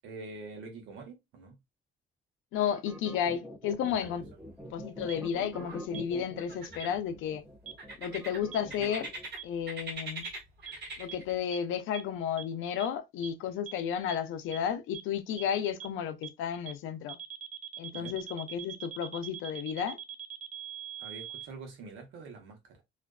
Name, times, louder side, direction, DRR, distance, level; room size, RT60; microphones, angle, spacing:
voice 1, 0.0-1.6 4.1-4.2 17.9-18.1 21.0-22.8, right 3 dB, 90° right, 0.9 m, -45 dB
voice 2, 2.5-4.2 4.7-7.4 8.0-9.1 9.4-10.3 11.0-17.2 17.8-20.0, left 8 dB, 90° left, 0.5 m, -32 dB
sound 1, 2.5-9.3, equal, 5° right, 0.7 m, -45 dB
sound 2, 4.0-4.6 4.8-5.8 6.4-7.2 7.8-9.4 9.7-11.4, right 2 dB, 55° right, 1.1 m, -42 dB
sound 3, 5.1-5.2 5.9-6.0 6.8-6.9 7.7-7.8 8.5-8.6 9.4-9.5 10.2-10.3 10.7-10.8 11.1-11.2 11.5-11.6 11.9-12.0 12.4-12.5 12.8-12.9 13.2-13.3 13.7-13.8 14.1-14.2 14.5-14.6 14.9-15.0 15.4-15.5 15.8-15.9 16.2-16.3 16.7-16.8 17.1-21.5, right 11 dB, 35° right, 0.4 m, -41 dB
2.4 x 2.3 x 2.2 m
cardioid pair, 90°, 20 cm